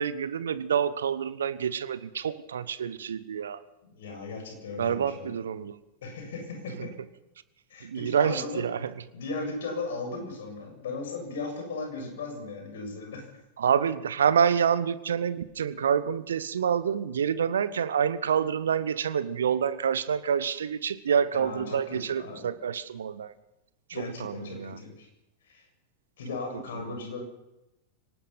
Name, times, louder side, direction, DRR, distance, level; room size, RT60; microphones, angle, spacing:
voice 1, 0.0-3.6 4.8-5.8 6.8-6.9 7.8-8.9 13.6-23.3 24.0-24.8 26.9-27.0, right 7 dB, 65° right, 16 dB, 1.3 m, -27 dB
voice 2, 3.9-5.4 6.0-6.9 7.7-8.6 9.1-13.2 21.3-22.5 23.9-25.1 25.5-25.7 26.2-27.2, left 3 dB, 60° left, 2 dB, 7.4 m, -37 dB
24.5 x 19.0 x 5.8 m, 0.94 s
figure-of-eight pair, 90°, 0 cm